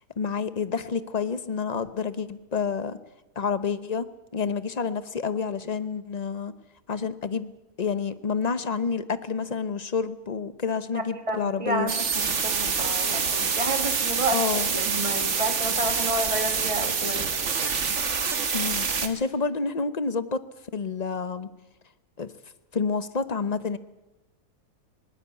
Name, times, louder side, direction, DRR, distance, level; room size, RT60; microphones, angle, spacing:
voice 1, 0.2-3.0 3.4-4.0 4.3-6.5 6.9-7.5 7.8-11.9 14.3-14.7 18.5-20.4 20.7-21.5 22.2-22.3 22.7-23.8, left 5 dB, 35° left, 14 dB, 0.9 m, -29 dB
voice 2, 10.9-14.4 14.7-17.3, right 2 dB, 20° right, 7 dB, 2.1 m, -30 dB
sound 1, 11.9-19.1, right 5 dB, 50° right, 1.8 m, -26 dB
20.0 x 19.0 x 8.3 m, 1.1 s
omnidirectional pair, 1.6 m